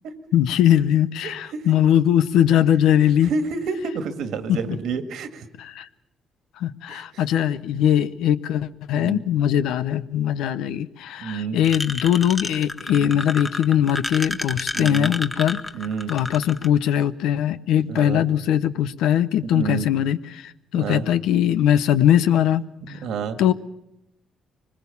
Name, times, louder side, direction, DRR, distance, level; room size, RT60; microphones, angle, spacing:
voice 1, 0.3-3.3 4.5-4.8 5.6-5.9 6.6-15.6 16.1-23.0 23.4-23.5, left 10 dB, 90° left, 14 dB, 0.8 m, -21 dB
voice 2, 1.2-1.6 3.0-5.5 6.9-7.0 9.0-9.2 11.2-11.6 12.9-13.2 14.7-15.1 15.7-16.1 17.9-18.2 19.4-19.9 20.7-21.0 22.9-23.4, right 5 dB, 80° right, 9 dB, 2.0 m, -29 dB
sound 1, 11.6-16.7, left 2 dB, 15° left, 1.2 m, -30 dB
23.5 x 20.5 x 7.1 m, 0.83 s
cardioid pair, 90°, 0 cm